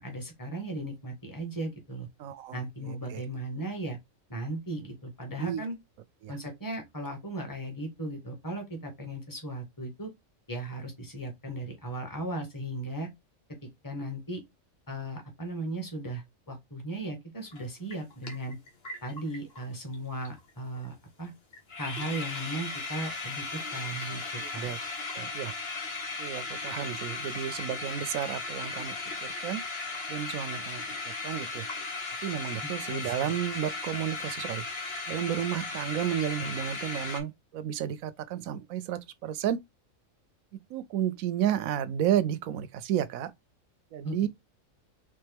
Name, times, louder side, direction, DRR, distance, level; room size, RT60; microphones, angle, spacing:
voice 1, 0.0-2.1 2.5-4.0 4.3-5.8 6.3-10.1 10.5-13.1 13.6-14.4 14.9-18.6 19.0-21.3 21.8-24.7 32.9-33.3 44.0-44.3, right 1 dB, 15° left, 1.4 m, -37 dB
voice 2, 2.2-2.6 2.9-3.2 5.4-5.6 6.2-6.4 24.4-24.8 25.2-25.5 26.2-29.0 29.2-29.6 30.1-30.8 31.2-31.7 32.2-34.6 35.1-39.6 40.7-43.3 43.9-44.3, right 10 dB, 85° right, 1.0 m, -32 dB
sound 1, 17.5-17.6 17.9-19.7 19.9-20.0 20.2-20.5 20.8-20.9 21.2-21.3 21.5-37.2, left 3 dB, 50° left, 1.4 m, -36 dB
4.4 x 3.5 x 3.4 m
omnidirectional pair, 1.4 m